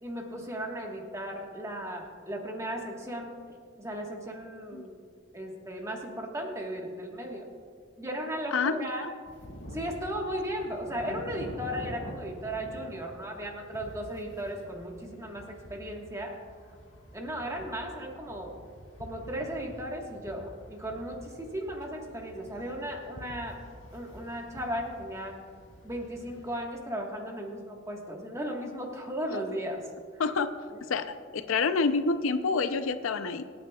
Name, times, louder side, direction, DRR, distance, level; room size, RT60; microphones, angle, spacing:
voice 1, 0.0-3.3 3.8-5.0 5.3-7.5 8.0-9.1 9.7-16.4 17.1-18.5 19.0-23.6 23.9-25.4 25.8-29.8, equal, 15° right, 0 dB, 1.3 m, -36 dB
voice 2, 8.5-9.1 29.3-29.6 30.2-30.5 30.9-31.1 31.3-33.4, left 4 dB, 90° left, 10 dB, 0.5 m, -28 dB
sound 1, 9.2-26.6, equal, 65° left, 2.1 m, -47 dB
25.0 x 9.0 x 2.3 m, 2.1 s
head